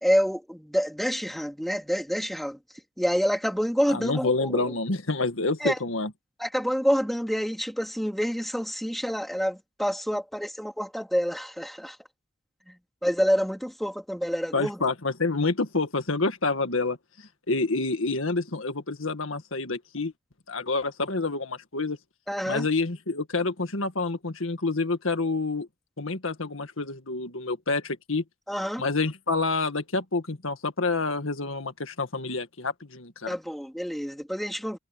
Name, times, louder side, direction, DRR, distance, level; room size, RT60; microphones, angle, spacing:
voice 1, 0.0-2.6 3.0-4.7 5.6-5.8 6.4-12.0 12.7-12.8 13.0-14.8 22.3-22.7 28.5-28.8 33.3-34.8, equal, ahead, 3.7 m, -27 dB
voice 2, 3.9-6.1 14.5-20.1 20.5-22.0 22.5-25.7 26.0-28.2 28.8-33.4, left 3 dB, 85° left, 1.8 m, -28 dB
head